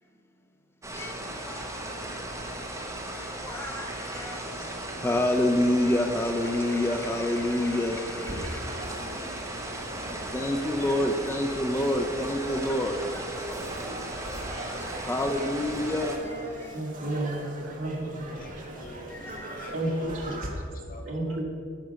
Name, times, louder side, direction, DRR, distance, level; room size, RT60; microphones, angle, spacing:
sound 1, 0.8-16.2, right 1 dB, 15° right, 1.0 m, -37 dB
voice 1, 0.9-2.6 3.0-13.6 14.4-17.0 18.8-19.7, left 1 dB, 10° left, 5 dB, 0.4 m, -30 dB
sound 2, 8.1-20.5, right 1 dB, 40° right, 1.3 m, -40 dB
voice 2, 16.7-18.5 19.7-20.3 21.0-21.4, right 1 dB, 70° right, -1 dB, 1.7 m, -31 dB
voice 3, 18.3-19.2 19.5-19.7 20.0-21.4, left 2 dB, 45° left, 3 dB, 1.0 m, -47 dB
9.3 x 5.1 x 6.3 m, 2.4 s
head